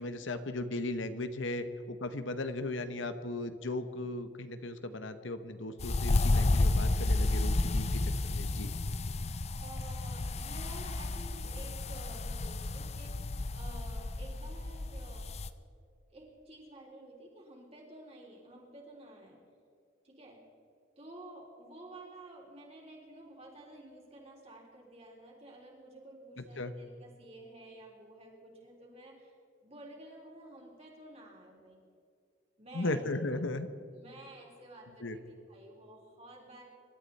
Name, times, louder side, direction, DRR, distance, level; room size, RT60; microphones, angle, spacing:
voice 1, 0.0-8.7 26.6-26.7 32.7-33.7 35.0-35.2, left 2 dB, 75° left, 10 dB, 1.1 m, -36 dB
sound 1, 5.8-15.5, left 2 dB, 30° left, 0.5 m, -31 dB
voice 2, 9.6-15.3 16.1-19.4 20.0-20.4 21.0-29.4 29.6-31.8 32.6-33.0 33.3-33.4 33.9-36.6, right 1 dB, 30° right, -1 dB, 3.7 m, -51 dB
25.5 x 13.0 x 4.2 m, 2.4 s
head